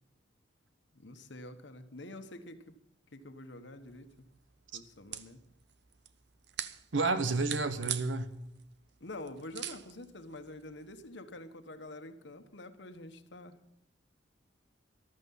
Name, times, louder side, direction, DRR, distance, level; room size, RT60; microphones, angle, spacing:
voice 1, 0.9-2.7 3.1-4.1 4.7-5.4 9.0-13.6, left 1 dB, 65° left, 1.2 m, -47 dB
sound 1, 3.8-11.1, right 11 dB, 55° right, 0.8 m, -45 dB
voice 2, 6.9-8.4, right 3 dB, 70° right, 1.1 m, -30 dB
14.5 x 12.5 x 5.5 m
head